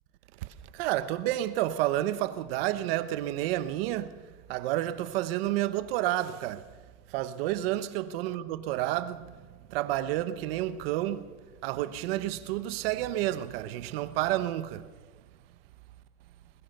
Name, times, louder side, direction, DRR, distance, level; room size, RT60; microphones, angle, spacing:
voice 1, 0.4-6.8 7.1-14.9, right 14 dB, 45° right, 1.0 m, -30 dB
21.5 x 20.0 x 6.6 m
supercardioid pair, 175°, 39 cm